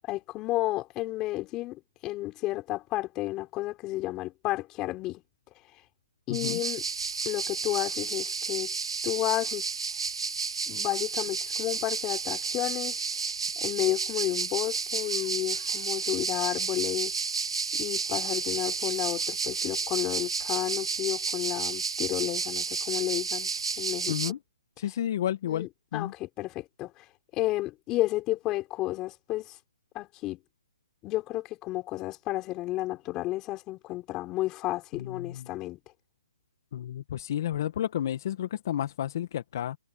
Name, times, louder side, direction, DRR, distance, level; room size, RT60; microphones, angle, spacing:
voice 1, 0.1-5.2 6.3-6.8 7.2-8.7 9.0-9.6 10.7-13.0 13.6-17.1 17.7-23.5 23.8-24.2 25.4-27.0 27.3-29.6 29.9-30.4 31.0-35.8, left 17 dB, 20° left, 4.7 m, -32 dB
voice 2, 6.3-6.6 24.1-24.4 24.8-26.1 35.0-35.5 36.7-39.8, left 11 dB, 45° left, 1.5 m, -31 dB
sound 1, 6.3-24.3, right 4 dB, 85° right, 1.7 m, -31 dB
hypercardioid pair, 155°, 3 cm